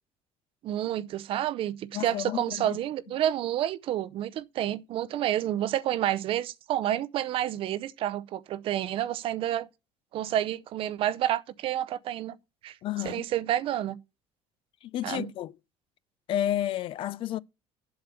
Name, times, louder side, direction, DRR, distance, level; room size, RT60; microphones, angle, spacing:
voice 1, 0.6-9.7 10.1-12.4 12.6-12.8 13.0-14.0 15.0-15.3, right 12 dB, 55° right, 0.6 m, -29 dB
voice 2, 1.9-2.8 12.8-13.3 14.8-15.5 16.3-17.4, left 12 dB, 50° left, 0.4 m, -31 dB
7.8 x 6.5 x 6.8 m
cardioid pair, 130°, 11 cm